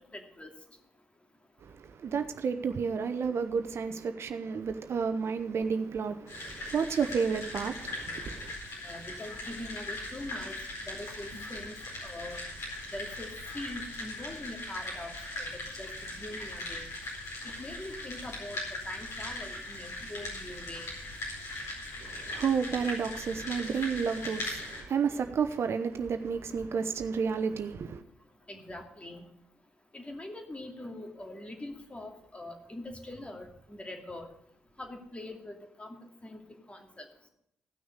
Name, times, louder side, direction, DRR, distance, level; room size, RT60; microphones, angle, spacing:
voice 1, 0.1-0.5 8.8-10.6 10.9-11.7 12.0-12.4 12.9-13.3 13.5-15.5 15.8-16.9 17.6-20.9 28.5-29.2 29.9-34.3 34.8-36.4 36.7-36.8, left 1 dB, 25° left, 2.6 m, -43 dB
voice 2, 2.0-8.5 22.1-28.0, right 6 dB, 55° right, 0.8 m, -31 dB
sound 1, 6.3-24.8, left 2 dB, 65° left, 4.4 m, -40 dB
15.5 x 6.3 x 6.6 m
hypercardioid pair, 40°, 5 cm